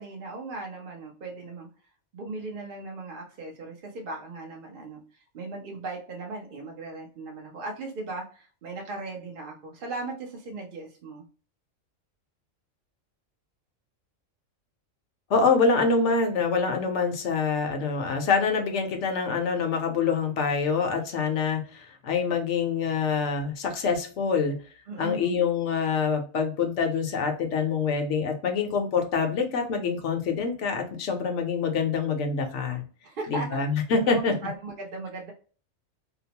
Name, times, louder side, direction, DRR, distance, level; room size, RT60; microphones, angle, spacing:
voice 1, 0.0-1.7 2.1-5.0 5.3-11.3 24.9-25.5 33.0-33.5 34.0-35.3, right 2 dB, 50° right, 0 dB, 0.7 m, -37 dB
voice 2, 15.3-24.5 25.0-32.8 33.3-34.3, left 5 dB, 65° left, 4 dB, 1.0 m, -25 dB
2.8 x 2.0 x 2.8 m, 0.40 s
omnidirectional pair, 1.4 m